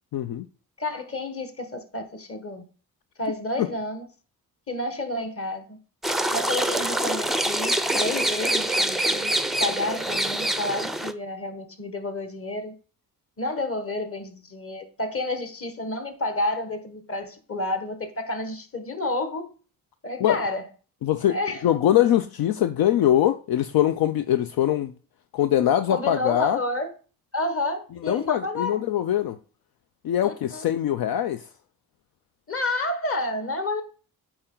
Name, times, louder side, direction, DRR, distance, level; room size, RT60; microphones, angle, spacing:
voice 1, 0.1-0.5 20.2-20.4 21.0-21.4 21.6-24.9 25.3-26.6 28.0-29.4 30.0-31.5, left 11 dB, 75° left, 0.5 m, -22 dB
voice 2, 0.8-2.7 3.2-4.0 4.7-5.8 6.3-9.3 9.6-12.7 13.4-19.5 20.0-20.7 21.3-21.6 25.9-26.9 27.3-28.8 30.2-30.7 32.5-33.8, left 2 dB, 35° left, 1.4 m, -30 dB
sound 1, 6.0-11.1, right 1 dB, ahead, 0.4 m, -25 dB
8.6 x 4.4 x 3.8 m
cardioid pair, 100°, 37 cm